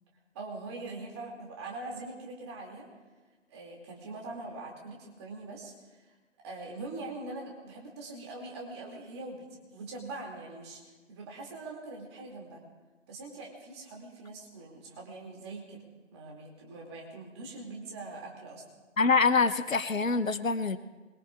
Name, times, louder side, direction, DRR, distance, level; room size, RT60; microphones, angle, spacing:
voice 1, 0.3-2.9 3.5-6.0 6.4-9.4 9.7-10.8 11.1-12.6 13.1-15.8 16.1-18.6, right 2 dB, 20° right, -1 dB, 2.4 m, -42 dB
voice 2, 19.0-20.8, left 4 dB, 85° left, 12 dB, 0.9 m, -25 dB
25.5 x 22.0 x 2.4 m, 1.3 s
figure-of-eight pair, 150°, 39 cm